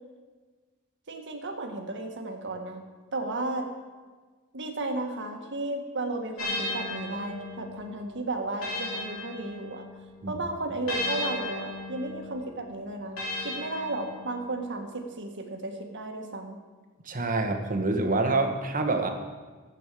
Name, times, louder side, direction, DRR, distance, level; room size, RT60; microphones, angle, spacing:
voice 1, 1.1-2.8 3.1-3.7 4.5-9.9 10.3-13.2 13.4-16.6, right 2 dB, 55° right, 3 dB, 1.8 m, -34 dB
sound 1, 6.4-10.1 10.9-14.6, left 2 dB, 65° left, 3.7 m, -36 dB
voice 2, 17.0-19.1, right 2 dB, 40° right, 4 dB, 1.5 m, -26 dB
14.0 x 8.5 x 7.7 m, 1.4 s
head